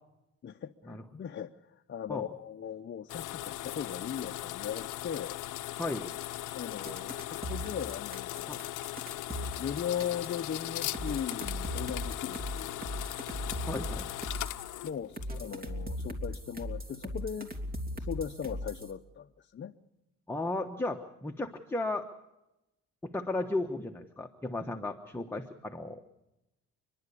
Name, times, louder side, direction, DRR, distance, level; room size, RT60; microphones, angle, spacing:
voice 1, 0.4-5.4 6.5-8.6 9.6-12.9 14.8-17.5 17.9-19.7, left 8 dB, 40° left, 5 dB, 0.7 m, -38 dB
sound 1, 3.1-15.7, left 15 dB, 85° left, 0.8 m, -39 dB
voice 2, 5.8-6.1 8.5-8.6 13.7-14.1 20.3-22.1 23.0-26.0, left 2 dB, 10° left, 4 dB, 1.2 m, -35 dB
sound 2, 6.9-10.4 10.9-14.6 15.2-18.9, equal, 30° right, 3.1 m, -38 dB
29.5 x 11.0 x 8.4 m, 0.93 s
cardioid pair, 90°, 30 cm